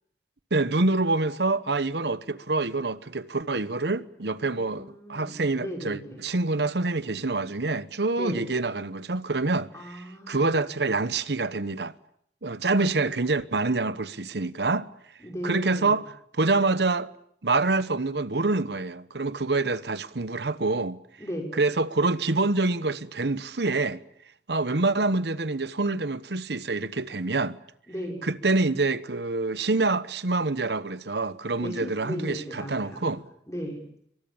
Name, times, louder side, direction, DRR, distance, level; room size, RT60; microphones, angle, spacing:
voice 1, 0.5-10.0 10.3-11.9 12.4-14.9 15.4-16.1 16.4-17.1 17.4-21.0 21.6-24.0 24.5-27.6 28.2-33.2, right 3 dB, 75° right, 1.1 m, -26 dB
voice 2, 4.5-6.2 8.2-8.5 9.7-10.6 15.2-16.0 21.2-21.5 27.9-28.2 31.6-33.2 33.5-33.8, equal, 15° left, 5.7 m, -36 dB
28.0 x 23.0 x 7.1 m
head